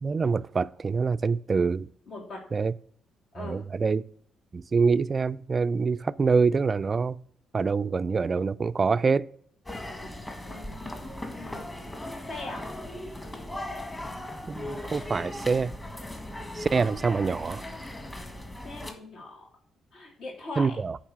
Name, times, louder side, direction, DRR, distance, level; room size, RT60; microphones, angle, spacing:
voice 1, 0.0-1.9 2.5-2.7 3.4-4.0 4.5-7.2 7.5-9.3 14.5-15.7 16.6-17.6 20.6-21.0, right 5 dB, 35° right, 0.3 m, -25 dB
voice 2, 2.1-2.4 3.3-3.6 10.2-11.6 11.9-12.0 12.2-12.7 18.6-19.5 19.9-20.8, left 2 dB, 70° left, 3.3 m, -41 dB
sound 1, 9.7-18.9, left 1 dB, 15° left, 1.5 m, -38 dB
9.2 x 3.9 x 6.3 m
cardioid pair, 90°, 0 cm